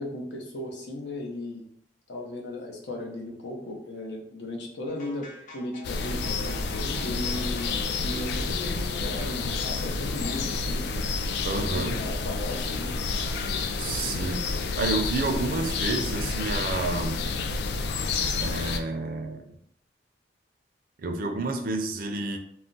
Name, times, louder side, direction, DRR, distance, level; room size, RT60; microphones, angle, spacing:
voice 1, 0.0-1.6 2.1-7.7 8.0-10.9 11.5-12.9, left 1 dB, 80° left, -1 dB, 0.7 m, -36 dB
sound 1, 4.9-7.8 8.1-8.3 9.2-9.4 10.2-10.6, left 1 dB, 45° left, 0.7 m, -47 dB
sound 2, 5.8-18.8, left 4 dB, 65° left, 0.3 m, -29 dB
voice 2, 11.4-12.0 13.8-14.4 14.8-17.2 18.4-19.5 21.0-22.4, right 2 dB, 55° right, 4 dB, 0.4 m, -29 dB
2.4 x 2.1 x 3.8 m, 0.70 s
head